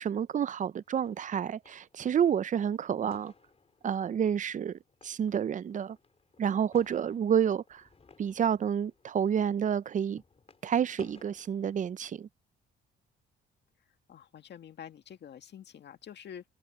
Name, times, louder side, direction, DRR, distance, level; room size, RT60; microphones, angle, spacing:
voice 1, 0.0-3.3 3.8-6.0 6.4-7.8 8.2-10.2 10.6-12.3, right 8 dB, 40° right, 0.5 m, -29 dB
sound 1, 0.7-11.8, left 4 dB, 30° left, 4.0 m, -58 dB
voice 2, 14.1-16.4, left 9 dB, 60° left, 1.8 m, -47 dB
cardioid pair, 90°, 20 cm